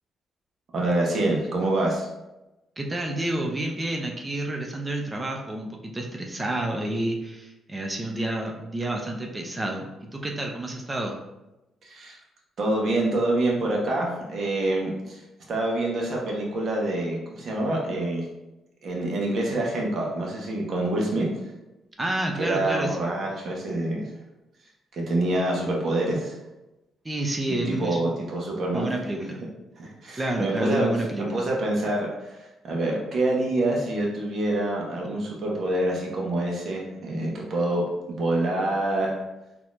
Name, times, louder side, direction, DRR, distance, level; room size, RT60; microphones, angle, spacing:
voice 1, 0.7-2.1 11.8-12.2 12.6-15.2 15.5-18.3 18.8-21.3 22.4-24.0 24.9-26.3 27.5-28.9 29.8-30.9 31.2-32.4 32.6-39.2, right 1 dB, 55° right, -2 dB, 1.0 m, -26 dB
voice 2, 2.8-11.2 22.0-22.9 27.0-28.2 28.7-29.4 30.2-31.4, right 1 dB, 20° right, 1 dB, 0.5 m, -29 dB
4.1 x 2.8 x 2.5 m, 0.98 s
cardioid pair, 90°, 0 cm